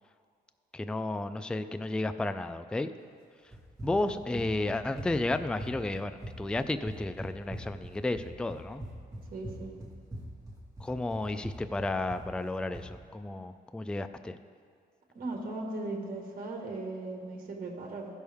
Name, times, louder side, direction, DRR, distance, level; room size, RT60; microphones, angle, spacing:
voice 1, 0.7-2.9 3.8-8.8 10.8-14.4, left 2 dB, 5° left, 10 dB, 0.3 m, -32 dB
Run, 3.5-12.9, right 1 dB, 20° right, 2.2 m, -43 dB
voice 2, 9.3-9.7 15.1-18.1, right 2 dB, 60° right, 0 dB, 1.7 m, -38 dB
15.0 x 6.4 x 3.5 m, 2.3 s
cardioid pair, 115°, 17 cm